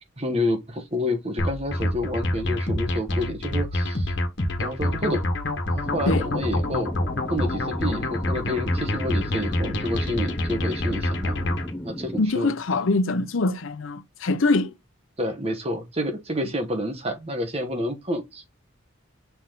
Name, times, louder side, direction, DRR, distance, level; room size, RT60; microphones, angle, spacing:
voice 1, 0.2-4.1 4.6-5.3 5.7-7.0 7.3-12.5 15.2-18.5, left 1 dB, 30° right, 1.2 m, -29 dB
sound 1, 1.4-11.7, left 1 dB, 60° left, 1.6 m, -27 dB
sound 2, 5.8-12.3, left 1 dB, 10° left, 0.9 m, -36 dB
voice 2, 12.2-14.7, left 3 dB, 80° left, 0.7 m, -23 dB
6.9 x 4.1 x 3.8 m
head